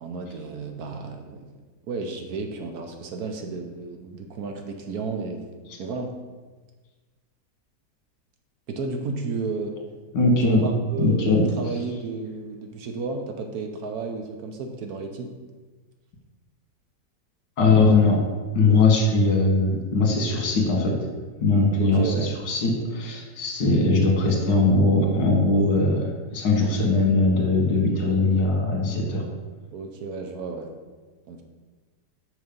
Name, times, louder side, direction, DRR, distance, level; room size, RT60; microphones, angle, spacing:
voice 1, 0.0-1.5 1.8-5.5 5.8-6.1 8.7-9.8 10.4-15.3 21.8-22.3 29.7-30.7 31.3-31.4, right 4 dB, 65° right, 4 dB, 1.2 m, -32 dB
voice 2, 10.1-10.6 11.0-11.4 17.6-18.2 18.5-20.9 21.4-29.2, left 3 dB, 80° left, 0 dB, 2.0 m, -20 dB
6.3 x 4.9 x 5.2 m, 1.3 s
omnidirectional pair, 1.9 m